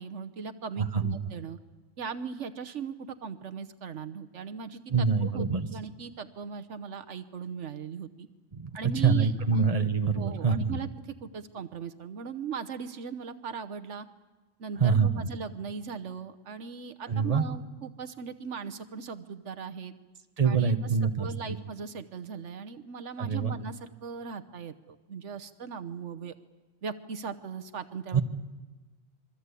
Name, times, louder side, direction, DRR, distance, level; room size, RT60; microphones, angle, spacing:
voice 1, 0.0-1.6 2.0-8.3 8.7-9.7 10.2-10.9 11.2-14.1 14.6-19.9 20.4-26.3 26.8-28.2, right 6 dB, 75° right, 10 dB, 1.3 m, -39 dB
voice 2, 0.8-1.2 4.9-5.7 8.5-8.7 8.9-10.8 14.8-15.3 17.1-17.4 20.4-21.3 23.2-23.5 28.1-28.2, right 5 dB, 30° right, 7 dB, 1.3 m, -25 dB
26.5 x 23.5 x 8.3 m, 1.2 s
omnidirectional pair, 1.2 m